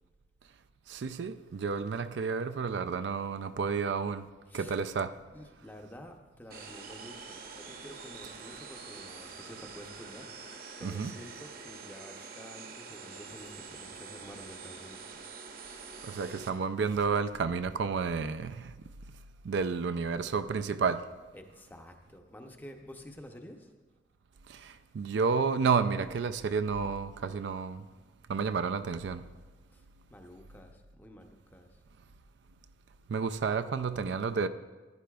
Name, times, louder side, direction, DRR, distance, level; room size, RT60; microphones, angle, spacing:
voice 1, 0.9-4.3 4.5-5.1 10.8-11.1 16.0-18.7 19.4-21.1 24.6-27.8 28.3-29.2 33.1-34.5, right 5 dB, 70° right, 0.4 m, -31 dB
voice 2, 5.3-10.3 10.8-15.2 21.3-23.7 29.7-31.8, equal, 10° left, 0.6 m, -50 dB
sound 1, 6.5-16.5, right 5 dB, 50° right, 0.9 m, -46 dB
14.5 x 10.0 x 2.3 m
head